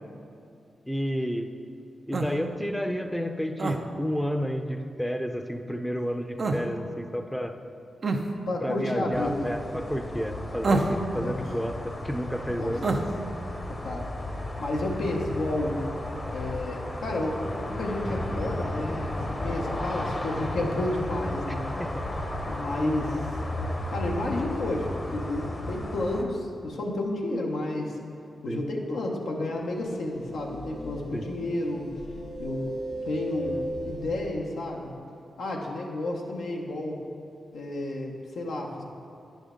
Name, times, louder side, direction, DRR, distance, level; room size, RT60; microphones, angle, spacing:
voice 1, 0.9-1.5 2.1-7.6 8.6-12.8 21.8-22.0 28.5-28.7 31.1-31.3, equal, 5° left, 6 dB, 0.6 m, -31 dB
sound 1, 2.1-2.3 3.6-3.8 6.4-6.6 8.0-8.2 10.6-11.0 12.8-13.1, right 3 dB, 60° right, 0.6 m, -25 dB
voice 2, 8.5-9.5 11.1-11.4 12.6-12.8 13.8-14.1 14.6-15.8 16.3-21.7 22.4-23.2 23.9-28.0 28.4-31.9 32.4-32.7 33.1-34.9 35.4-37.0 37.5-38.8, left 1 dB, 85° left, -1 dB, 0.9 m, -31 dB
sound 2, 9.1-26.2, left 1 dB, 40° left, 0.9 m, -34 dB
sound 3, 29.6-34.3, right 1 dB, 65° left, 1.6 m, -37 dB
9.7 x 5.1 x 3.8 m, 2.5 s
cardioid pair, 50°, 0 cm